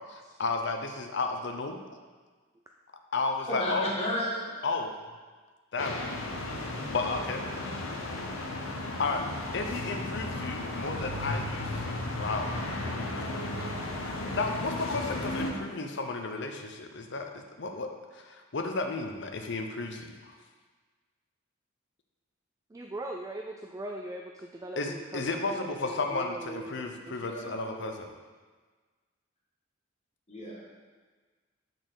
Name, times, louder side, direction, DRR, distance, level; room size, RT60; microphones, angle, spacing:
voice 1, 0.1-1.8 3.1-3.9 4.6-4.9 5.7-6.0 6.6-7.5 8.6-9.3 9.5-12.5 14.3-20.3 24.8-28.1, left 3 dB, 60° left, 5 dB, 0.7 m, -33 dB
voice 2, 3.5-4.7 27.1-27.9 30.3-30.6, equal, 30° left, -5 dB, 1.8 m, -34 dB
sound 1, 5.8-15.5, left 2 dB, 85° left, 1.0 m, -34 dB
voice 3, 22.7-27.3, right 1 dB, 15° right, 2 dB, 0.3 m, -41 dB
6.5 x 4.3 x 6.2 m, 1.4 s
head